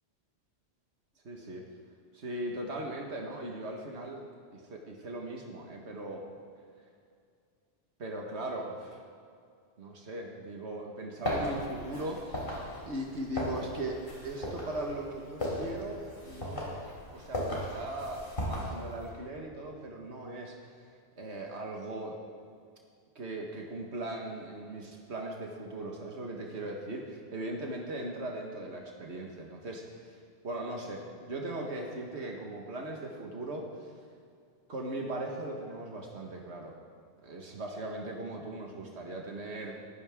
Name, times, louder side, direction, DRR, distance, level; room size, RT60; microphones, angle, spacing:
voice 1, 1.2-1.6 2.1-4.2 4.5-6.2 8.0-9.0 9.8-14.0 14.2-16.8 17.1-20.6 21.2-22.2 23.2-30.2 30.4-33.9 34.7-36.7 37.2-39.9, right 1 dB, 80° right, 0 dB, 1.9 m, -39 dB
sound 1, 11.2-19.1, left 1 dB, 50° left, 4.1 m, -37 dB
21.5 x 15.0 x 3.7 m, 2.3 s
omnidirectional pair, 1.1 m